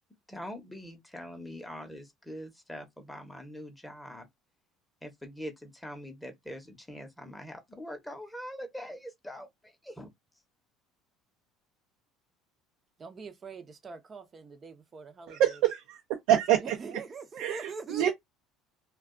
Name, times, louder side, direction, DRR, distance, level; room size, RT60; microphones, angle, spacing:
voice 1, 0.3-4.3 5.0-10.1, equal, 5° left, 0.8 m, -43 dB
voice 2, 13.0-15.4 16.6-18.1, right 4 dB, 25° right, 0.6 m, -43 dB
voice 3, 15.3-16.0 16.3-16.8 17.4-18.1, right 11 dB, 75° right, 0.6 m, -25 dB
2.3 x 2.2 x 3.6 m
cardioid pair, 130°, 0 cm